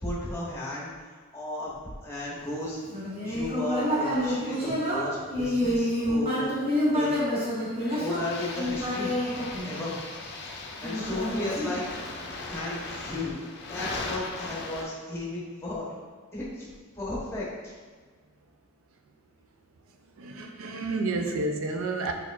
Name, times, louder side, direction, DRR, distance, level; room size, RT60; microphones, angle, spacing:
voice 1, 0.0-1.7 2.0-2.8 3.2-7.2 8.0-10.0 10.8-11.8 12.5-13.4 13.7-15.9 16.3-16.7 16.9-17.7, left 1 dB, 10° left, -6 dB, 0.9 m, -34 dB
Human voice, 2.9-10.2 10.8-12.3, equal, 25° right, 0.9 m, -28 dB
sound 1, 7.8-14.8, left 3 dB, 50° left, 0.5 m, -38 dB
voice 2, 20.2-22.1, right 3 dB, 70° right, 4 dB, 0.4 m, -30 dB
4.4 x 4.1 x 2.4 m, 1.5 s
head